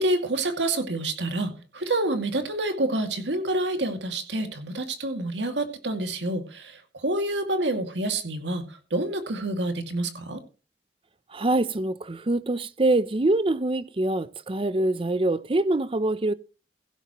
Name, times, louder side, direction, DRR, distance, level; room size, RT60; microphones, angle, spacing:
voice 1, 0.0-10.4, right 2 dB, 85° right, 2.3 m, -28 dB
voice 2, 11.3-16.3, right 2 dB, 30° right, 0.6 m, -24 dB
16.0 x 11.5 x 3.0 m
head